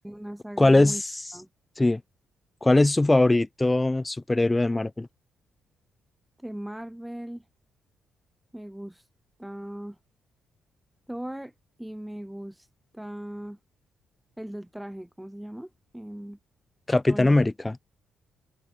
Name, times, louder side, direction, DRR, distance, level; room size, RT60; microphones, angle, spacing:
voice 1, 0.0-1.0 1.3-1.5 6.4-7.4 8.5-9.0 9.4-10.0 11.1-11.5 11.8-12.7 12.9-13.6 14.4-16.4 17.1-17.4, right 1 dB, 5° right, 4.6 m, -38 dB
voice 2, 0.6-1.1 1.8-2.0 2.6-5.1 16.9-17.8, left 2 dB, 15° left, 1.0 m, -21 dB
cardioid pair, 90°, 0 cm